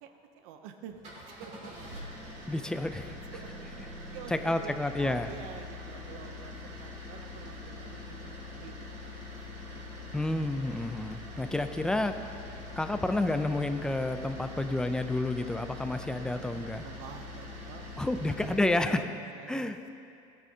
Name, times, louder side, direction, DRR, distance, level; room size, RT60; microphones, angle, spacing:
voice 1, 0.0-0.9 1.4-1.7 3.3-3.5 4.1-10.2 11.7-12.1 12.4-12.5 16.5-19.9, right 8 dB, 85° right, 6 dB, 0.6 m, -48 dB
sound 1, 0.9-18.8, left 2 dB, 45° right, 2.8 m, -43 dB
voice 2, 2.5-3.1 4.3-5.3 10.1-12.1 12.8-16.8 18.0-19.0 19.5-19.8, left 2 dB, 5° left, 8 dB, 0.3 m, -30 dB
17.0 x 9.1 x 2.8 m, 2.5 s
cardioid pair, 160°, 16 cm